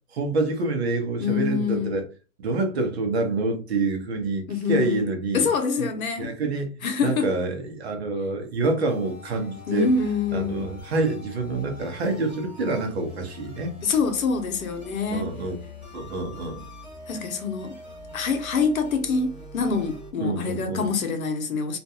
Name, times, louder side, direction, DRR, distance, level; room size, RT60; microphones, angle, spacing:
voice 1, 0.1-2.1 2.4-5.5 5.8-5.9 6.2-6.7 7.0-9.9 10.3-13.7 15.1-15.6 15.9-16.6 20.2-20.9, right 3 dB, 50° right, 0.8 m, -27 dB
voice 2, 1.2-2.0 4.5-5.0 5.3-6.3 6.8-7.3 9.7-10.7 13.8-15.3 17.1-17.8 18.1-21.8, left 5 dB, 75° left, 0.8 m, -25 dB
sound 1, 8.8-20.1, left 2 dB, 5° right, 0.6 m, -43 dB
2.5 x 2.2 x 2.7 m
hypercardioid pair, 160°, 42 cm